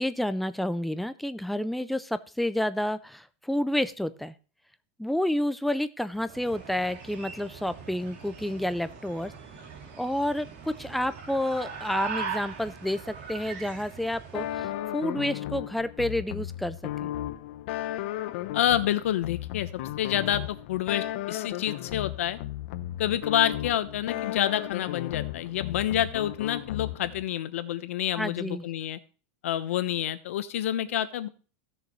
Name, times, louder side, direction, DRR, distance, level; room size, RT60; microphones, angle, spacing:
voice 1, 0.0-4.3 5.0-9.3 10.0-17.1 28.1-28.7, left 1 dB, ahead, 12 dB, 0.4 m, -30 dB
sound 1, 6.1-14.8, right 6 dB, 55° right, 3.0 m, -40 dB
sound 2, 14.3-27.2, left 13 dB, 55° left, 0.7 m, -35 dB
voice 2, 18.5-19.7 20.0-22.4 23.0-29.0 29.4-31.3, left 11 dB, 90° left, 12 dB, 1.0 m, -28 dB
16.0 x 6.7 x 3.1 m, 0.37 s
supercardioid pair, 175°, 7 cm